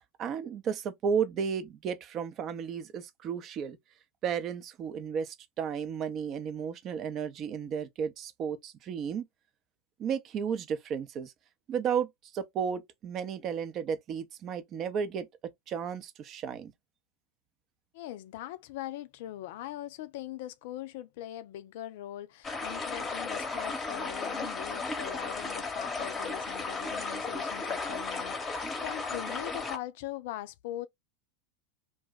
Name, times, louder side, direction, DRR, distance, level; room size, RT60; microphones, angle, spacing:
voice 1, 0.2-3.8 4.2-9.3 10.0-11.3 11.7-12.1 12.3-15.3 15.7-16.7, right 7 dB, 35° right, 0.6 m, -33 dB
voice 2, 17.9-30.9, left 13 dB, 55° left, 0.4 m, -41 dB
sound 1, 22.4-29.8, left 4 dB, 20° left, 0.9 m, -35 dB
2.6 x 2.2 x 3.9 m
figure-of-eight pair, 85°, 0 cm